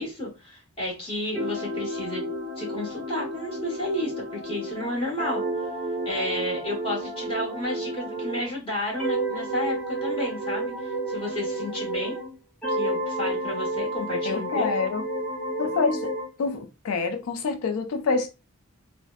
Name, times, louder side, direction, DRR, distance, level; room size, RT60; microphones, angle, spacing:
voice 1, 0.0-2.2 2.6-5.4 6.0-12.2 12.7-14.7, left 1 dB, 25° left, 1.1 m, -32 dB
sound 1, 1.3-8.6 8.9-12.3 12.6-16.3, right 1 dB, 5° left, 0.7 m, -31 dB
voice 2, 14.3-15.0 15.6-16.1 16.4-18.3, left 4 dB, 70° left, 0.4 m, -26 dB
2.7 x 2.1 x 2.3 m
head